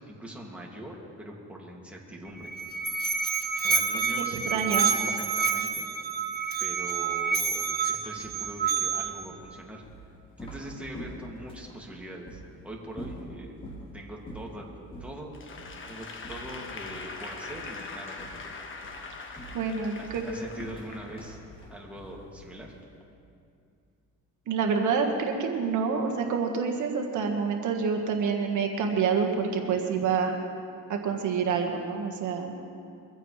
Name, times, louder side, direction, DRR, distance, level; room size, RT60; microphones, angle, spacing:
voice 1, 0.1-2.5 3.6-5.9 6.6-9.8 10.4-13.6 13.9-15.3 15.9-18.5 20.0-21.4 21.7-22.7, right 1 dB, 5° right, -3 dB, 2.4 m, -42 dB
Musical instrument, 2.3-9.2, right 5 dB, 30° right, 1.2 m, -28 dB
voice 2, 4.5-4.9 19.5-20.2 24.5-30.4 30.9-32.7, right 5 dB, 65° right, 3 dB, 1.6 m, -27 dB
sound 1, 8.1-11.8 12.3-12.4 12.9-13.9 14.3-14.6 14.9-15.2 15.6-15.8 16.2-17.2 17.5-17.8 18.2-18.5 18.8-22.8, equal, 15° left, 3.8 m, -45 dB
Applause / Crowd, 15.3-21.6, left 4 dB, 40° left, 1.4 m, -42 dB
23.0 x 15.5 x 3.3 m, 2.4 s
cardioid pair, 115°, 32 cm